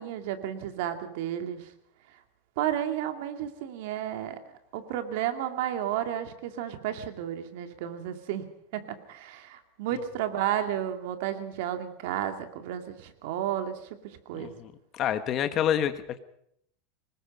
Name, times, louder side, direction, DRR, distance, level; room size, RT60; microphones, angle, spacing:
voice 1, 0.0-1.7 2.6-4.4 4.7-8.4 8.7-14.5, right 11 dB, 65° right, 7 dB, 2.3 m, -32 dB
voice 2, 14.3-16.2, left 10 dB, 30° left, 10 dB, 1.4 m, -28 dB
24.0 x 19.5 x 5.5 m, 0.70 s
supercardioid pair, 160°, 0 cm